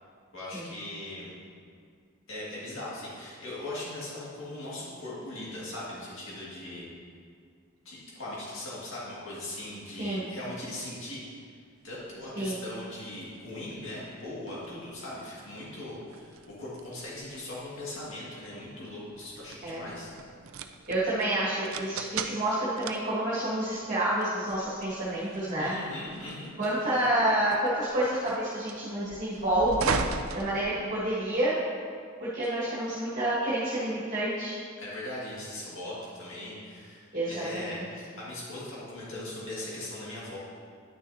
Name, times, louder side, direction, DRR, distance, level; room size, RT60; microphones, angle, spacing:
voice 1, 0.3-1.3 2.3-6.9 7.9-11.3 11.8-20.1 25.6-26.7 34.8-40.4, left 1 dB, 65° left, -7 dB, 2.1 m, -39 dB
sound 1, 12.0-31.3, right 5 dB, 75° right, 0.4 m, -40 dB
voice 2, 20.9-25.7 26.6-29.9 30.3-31.6 32.2-34.5 37.1-37.8, right 1 dB, 40° right, -10 dB, 1.7 m, -29 dB
10.5 x 6.3 x 2.8 m, 2.1 s
head